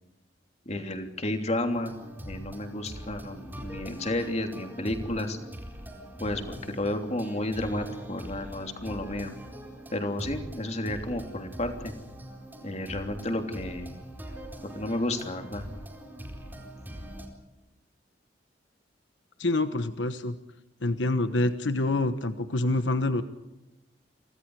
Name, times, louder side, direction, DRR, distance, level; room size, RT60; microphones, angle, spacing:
voice 1, 0.6-1.9 2.3-5.4 6.2-9.3 9.9-11.9 12.6-13.9 14.7-15.6, left 1 dB, 40° left, 5 dB, 3.2 m, -32 dB
sound 1, 1.7-17.3, equal, 10° right, 4.3 m, -42 dB
voice 2, 19.4-20.4 20.8-23.2, left 2 dB, 85° left, 9 dB, 1.3 m, -26 dB
30.0 x 25.0 x 4.9 m, 0.99 s
head